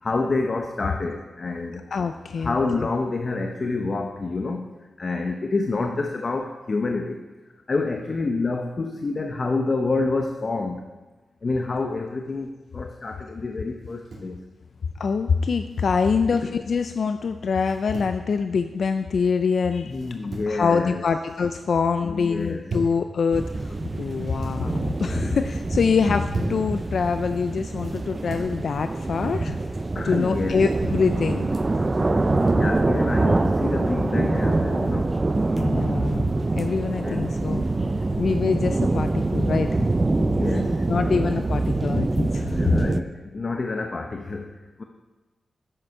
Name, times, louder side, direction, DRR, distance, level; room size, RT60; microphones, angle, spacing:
voice 1, 0.0-1.8 2.4-4.7 5.0-7.2 7.7-10.8 11.4-14.4 16.4-16.5 19.9-21.0 22.0-22.6 29.9-30.6 32.5-35.1 37.0-37.3 40.2-41.2 42.5-44.8, left 3 dB, 45° left, 4 dB, 0.7 m, -28 dB
voice 2, 1.9-2.6 15.0-20.0 20.5-29.6 30.0-31.5 35.6-37.7 38.2-39.8 40.5-42.8, left 5 dB, 65° left, 9 dB, 0.4 m, -25 dB
sound 1, 13.8-14.4 15.7-16.3 17.6-18.2 19.9-20.6 21.0-21.5 22.3-23.0 24.1-24.6 25.9-26.7 27.8-28.5, right 1 dB, 65° right, 2.6 m, -37 dB
sound 2, 23.3-43.0, right 2 dB, 25° right, 0.4 m, -24 dB
9.7 x 7.9 x 4.8 m, 1.2 s
wide cardioid pair, 100°, 0 cm